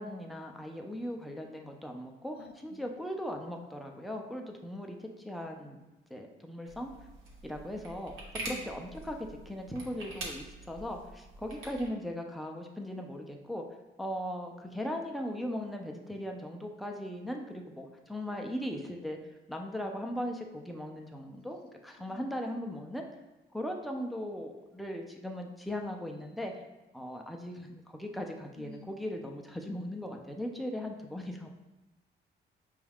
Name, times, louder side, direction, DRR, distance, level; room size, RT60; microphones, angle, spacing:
voice 1, 0.0-5.8 6.1-6.9 7.4-8.1 8.4-13.6 14.0-19.2 19.5-23.1 23.5-26.5 26.9-31.5, equal, ahead, 2 dB, 0.5 m, -38 dB
voice 2, 2.4-2.9 4.8-4.9 8.4-8.7 22.1-22.3 28.6-28.9, left 4 dB, 55° left, 4 dB, 0.5 m, -50 dB
sound 1, 6.7-11.9, right 2 dB, 90° right, 0.9 m, -45 dB
5.2 x 2.4 x 3.4 m, 1.0 s
cardioid pair, 90°, 20 cm